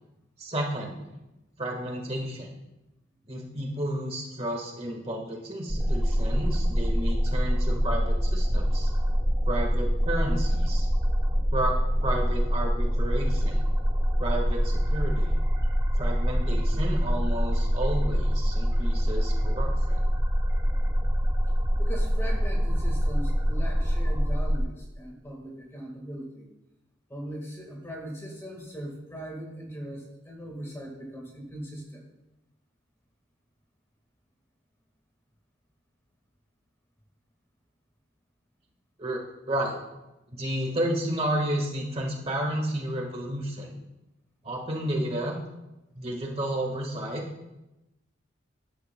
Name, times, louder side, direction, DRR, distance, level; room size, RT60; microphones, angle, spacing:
voice 1, 0.4-1.0 1.6-2.6 3.3-8.9 9.5-10.9 11.5-11.7 12.0-13.7 14.2-15.3 16.0-20.0 39.0-39.2 39.5-39.7 40.3-43.7 44.4-45.4 46.0-47.2, right 1 dB, 30° right, 0 dB, 1.5 m, -31 dB
sound 1, 5.7-24.6, equal, 15° right, 1.1 m, -25 dB
voice 2, 21.8-26.5 27.1-32.0, right 1 dB, 15° left, 0 dB, 1.6 m, -39 dB
13.0 x 10.5 x 2.3 m, 0.97 s
head